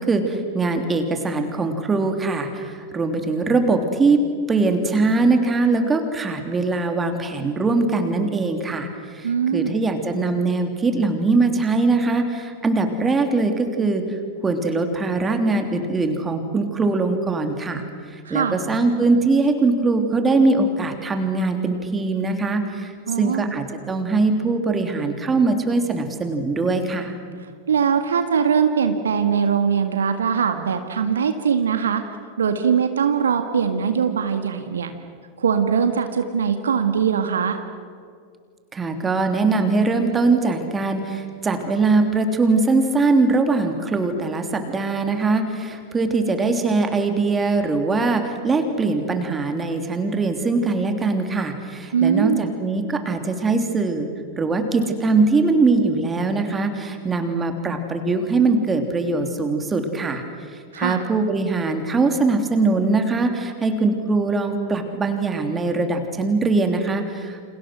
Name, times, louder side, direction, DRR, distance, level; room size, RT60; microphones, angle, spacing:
voice 1, 0.0-4.2 4.5-14.0 14.4-17.8 18.1-27.1 38.7-54.1 54.4-60.2 60.8-67.5, right 3 dB, 15° right, 5 dB, 3.3 m, -21 dB
voice 2, 9.2-9.7 18.3-18.6 23.1-23.5 27.7-32.0 32.4-34.9 35.4-37.6 51.9-52.4 60.7-61.0, right 7 dB, 65° right, 7 dB, 1.8 m, -21 dB
29.5 x 28.0 x 6.3 m, 2.2 s
figure-of-eight pair, 90°, 0 cm